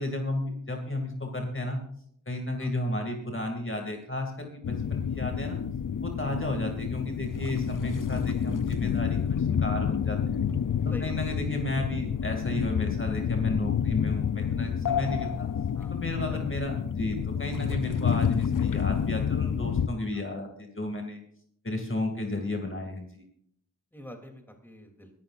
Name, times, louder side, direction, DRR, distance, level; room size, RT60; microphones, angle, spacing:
voice 1, 0.0-1.8 2.3-5.6 6.0-10.4 10.8-15.5 15.9-21.2 21.6-23.2, left 1 dB, 40° left, 2 dB, 2.5 m, -33 dB
sound 1, 4.6-19.9, left 7 dB, 85° left, 0.6 m, -29 dB
voice 2, 10.9-11.2 15.7-16.5 20.1-20.2 23.9-25.1, equal, 5° left, 3 dB, 3.1 m, -46 dB
23.5 x 12.0 x 2.6 m, 0.66 s
wide cardioid pair, 50°, 32 cm